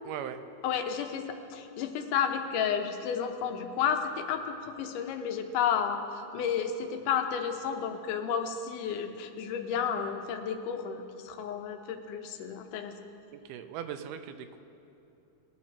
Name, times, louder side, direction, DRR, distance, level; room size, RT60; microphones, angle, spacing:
voice 1, 0.0-0.4 13.3-14.6, right 9 dB, 85° right, 9 dB, 2.2 m, -39 dB
voice 2, 0.6-6.0 6.3-12.9, left 7 dB, 90° left, 6 dB, 2.3 m, -32 dB
20.0 x 7.4 x 4.4 m, 2.8 s
omnidirectional pair, 3.6 m